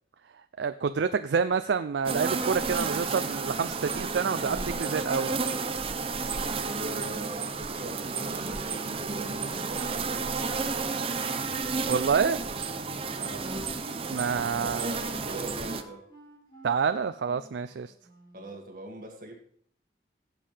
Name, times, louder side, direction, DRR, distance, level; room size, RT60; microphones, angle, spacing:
voice 1, 0.6-5.4 11.9-12.4 14.1-14.9 16.6-17.9, right 6 dB, 75° right, 0.4 m, -28 dB
sound 1, 2.0-15.8, right 4 dB, 30° right, 0.6 m, -32 dB
voice 2, 6.6-10.4 13.1-13.5 14.5-16.1 18.3-19.4, right 1 dB, 50° right, 2.2 m, -41 dB
Wind instrument woodwind instrument, 13.0-18.6, equal, 25° left, 3.5 m, -51 dB
16.5 x 7.6 x 3.4 m
head